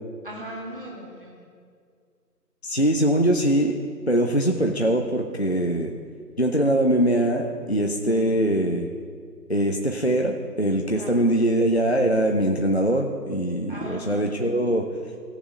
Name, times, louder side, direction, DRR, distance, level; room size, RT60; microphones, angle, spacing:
voice 1, 0.2-1.4 8.0-8.3 10.9-11.2 13.7-14.5, equal, 30° right, -3 dB, 2.2 m, -38 dB
voice 2, 2.6-3.7 4.1-5.9 6.4-8.9 9.5-14.9, right 1 dB, 40° left, 2 dB, 0.6 m, -22 dB
16.5 x 7.0 x 5.3 m, 2.1 s
figure-of-eight pair, 165°, 50 cm